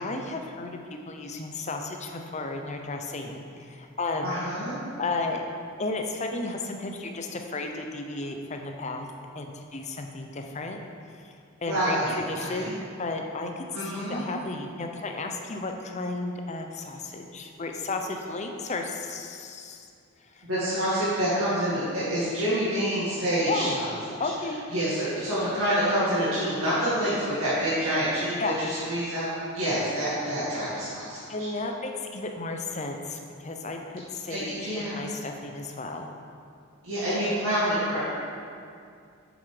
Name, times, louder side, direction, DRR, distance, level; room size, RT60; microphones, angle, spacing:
voice 1, 0.0-4.3 5.0-5.4 5.8-9.1 9.3-10.8 11.2-11.3 11.6-19.9 20.3-20.4 23.5-23.7 24.2-24.6 28.4-28.6 31.3-36.1, left 3 dB, 35° left, 3 dB, 0.7 m, -33 dB
voice 2, 4.2-4.8 11.6-12.7 13.7-14.2 20.4-23.9 24.7-31.5 34.3-35.0 36.8-38.0, equal, 85° right, -10 dB, 2.1 m, -27 dB
7.1 x 7.0 x 5.0 m, 2.3 s
head